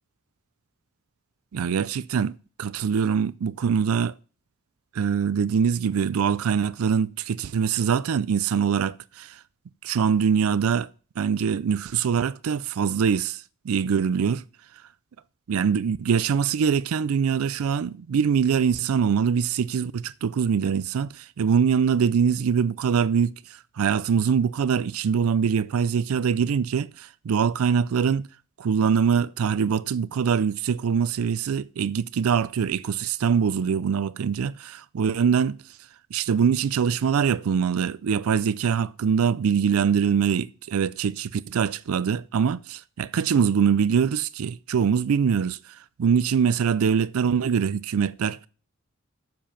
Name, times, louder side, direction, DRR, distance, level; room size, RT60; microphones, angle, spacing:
voice 1, 1.5-2.3 2.6-4.1 4.9-9.4 9.8-10.9 11.2-14.4 15.5-28.3 28.6-35.6 36.1-48.5, right 7 dB, 80° right, 0.4 m, -23 dB
7.7 x 7.0 x 5.6 m
head